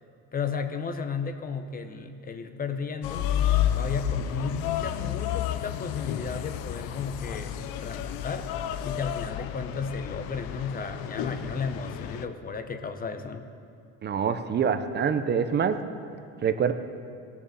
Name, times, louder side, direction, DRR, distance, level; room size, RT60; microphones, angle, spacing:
voice 1, 0.3-3.3 3.8-8.5 8.8-13.5, left 5 dB, 25° left, 8 dB, 0.8 m, -34 dB
sound 1, 3.0-12.3, left 10 dB, 80° left, 0.7 m, -31 dB
voice 2, 14.0-15.7 16.4-16.7, right 7 dB, 30° right, 10 dB, 0.7 m, -25 dB
18.0 x 7.2 x 6.9 m, 2.4 s
cardioid pair, 130°, 34 cm